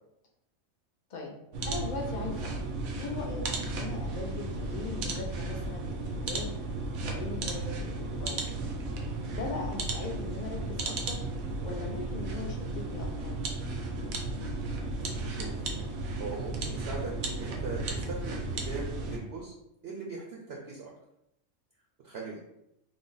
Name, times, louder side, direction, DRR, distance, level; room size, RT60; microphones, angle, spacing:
sound 1, 1.5-19.2, right 2 dB, 85° right, 1.1 m, -34 dB
voice 1, 1.6-2.6 3.0-6.5 7.0-8.5 9.3-11.2 11.6-13.3, left 3 dB, 55° left, 0 dB, 0.5 m, -39 dB
voice 2, 16.2-19.5 19.8-20.9 22.0-22.4, right 4 dB, 60° right, -2 dB, 0.7 m, -40 dB
3.3 x 2.1 x 3.8 m, 0.83 s
omnidirectional pair, 1.4 m